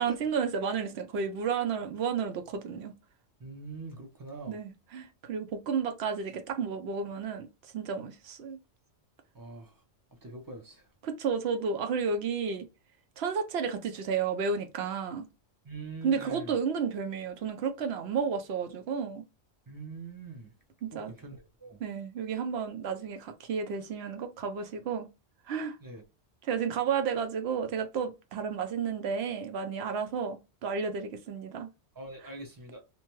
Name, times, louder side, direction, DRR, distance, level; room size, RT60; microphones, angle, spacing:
voice 1, 0.0-2.9 4.5-7.5 7.7-8.6 11.0-12.7 13.2-15.3 16.0-19.2 20.8-21.1 21.8-25.1 25.5-25.8 26.5-31.7 32.2-32.3, right 6 dB, 70° right, 0.8 m, -32 dB
voice 2, 3.4-4.6 9.3-9.7 10.2-10.8 15.6-16.5 19.7-20.5 20.9-21.8 25.8-26.0 32.0-32.8, right 3 dB, 25° right, 0.5 m, -43 dB
2.6 x 2.2 x 2.9 m
omnidirectional pair, 1.2 m